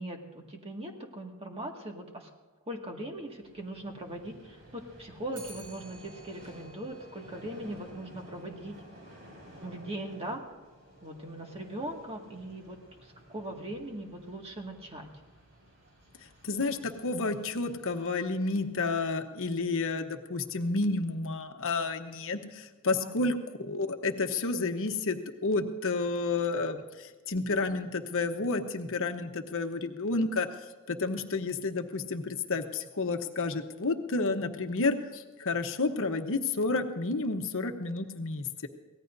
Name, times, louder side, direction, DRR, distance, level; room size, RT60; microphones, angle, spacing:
voice 1, 0.0-2.3 2.7-8.8 9.6-10.4 11.0-12.8 13.3-15.1 23.0-23.1, right 1 dB, 25° right, 1 dB, 1.9 m, -40 dB
Vehicle, 3.0-19.4, equal, 55° right, 6.0 m, -54 dB
Clock, 5.3-14.7, right 2 dB, 80° right, 6.2 m, -57 dB
voice 2, 16.4-30.5 30.9-38.7, left 3 dB, 65° left, 6 dB, 1.0 m, -30 dB
24.0 x 17.5 x 2.7 m, 1.3 s
head